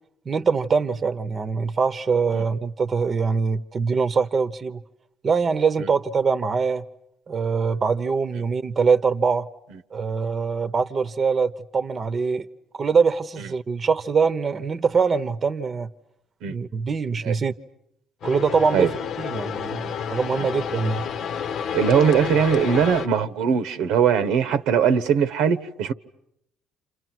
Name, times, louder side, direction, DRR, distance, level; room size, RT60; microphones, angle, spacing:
voice 1, 0.3-4.8 5.2-6.8 7.3-9.5 9.9-12.5 12.7-15.9 16.5-17.5 18.2-18.9 19.2-21.0, right 5 dB, 30° right, 1.0 m, -23 dB
sound 1, 18.2-23.1, left 7 dB, 60° left, 1.0 m, -30 dB
voice 2, 21.7-25.9, right 7 dB, 85° right, 1.3 m, -20 dB
30.0 x 28.0 x 6.1 m
cardioid pair, 125°, 0 cm